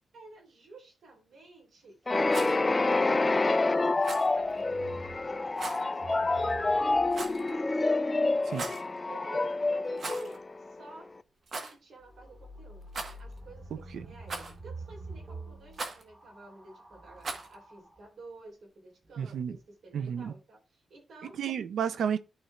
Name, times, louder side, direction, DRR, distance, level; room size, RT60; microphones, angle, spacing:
voice 1, 0.1-8.1 9.1-11.1 11.5-12.9 13.2-21.4, right 2 dB, 70° right, 3.3 m, -52 dB
sound 1, 2.1-10.8, left 3 dB, 25° left, 0.4 m, -27 dB
Rattle, 2.2-2.6 4.0-4.3 5.6-5.8 7.1-7.5 8.4-8.9 9.9-10.4 10.6-10.7 11.5-11.7 12.9-13.4 14.3-14.7 15.7-16.0 17.2-17.5, right 3 dB, 55° right, 1.4 m, -38 dB
sound 2, 4.4-9.0 12.0-18.1 19.0-19.7, right 2 dB, 25° right, 1.7 m, -48 dB
voice 2, 19.2-19.5 19.9-20.3 21.4-22.2, right 8 dB, 90° right, 0.6 m, -31 dB
12.0 x 4.4 x 2.4 m
wide cardioid pair, 115°, 0 cm